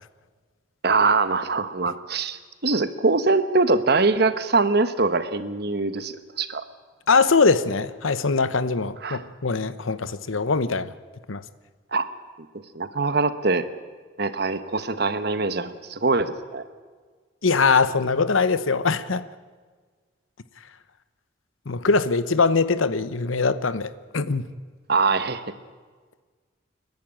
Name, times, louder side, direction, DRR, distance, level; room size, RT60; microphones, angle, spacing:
voice 1, 0.8-6.6 9.0-9.2 11.9-12.1 12.7-13.6 14.2-16.6 24.9-25.5, right 3 dB, 55° right, 11 dB, 1.1 m, -23 dB
voice 2, 7.1-10.9 11.3-11.4 17.4-19.2 21.7-24.5, left 4 dB, 85° left, 14 dB, 0.9 m, -22 dB
30.0 x 11.5 x 9.0 m, 1.5 s
head